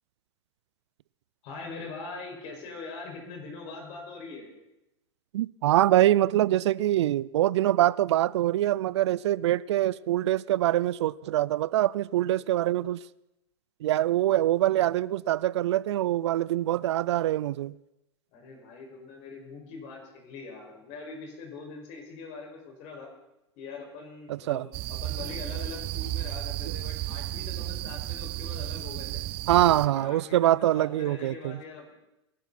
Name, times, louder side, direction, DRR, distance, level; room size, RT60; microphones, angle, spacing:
voice 1, 1.4-4.5 18.3-23.1 23.5-29.2 29.9-31.9, left 4 dB, 50° left, 5.7 m, -42 dB
voice 2, 5.3-13.0 13.8-17.7 24.3-24.7 29.5-31.6, right 14 dB, 75° right, 0.5 m, -24 dB
sound 1, 24.7-29.9, right 16 dB, 40° right, 0.7 m, -33 dB
22.5 x 12.0 x 4.2 m
hypercardioid pair, 120°, 15 cm